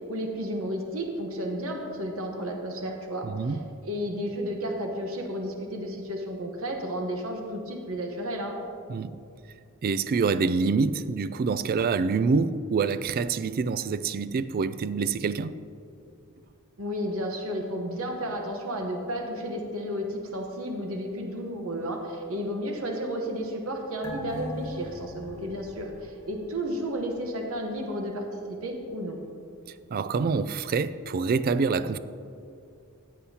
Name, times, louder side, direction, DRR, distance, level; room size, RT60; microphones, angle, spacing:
voice 1, 0.1-3.3 3.8-8.6 16.8-29.2, equal, 70° right, 1.1 m, -32 dB
voice 2, 3.2-3.7 8.9-9.2 9.8-15.6 29.7-32.0, right 4 dB, 45° right, 0.3 m, -26 dB
sound 1, 24.0-26.9 27.3-27.4, left 1 dB, 10° left, 1.6 m, -40 dB
15.0 x 8.5 x 2.8 m
head